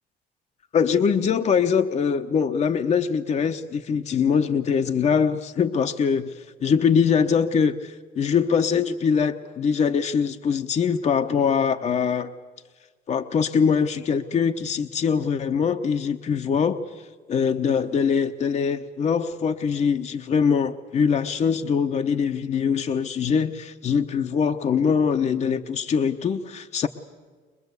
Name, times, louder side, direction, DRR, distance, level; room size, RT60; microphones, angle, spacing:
voice 1, 0.7-12.3 13.1-16.8 17.3-26.9, left 6 dB, 40° left, 6 dB, 1.0 m, -23 dB
23.5 x 21.0 x 8.2 m, 1.5 s
cardioid pair, 110°, 17 cm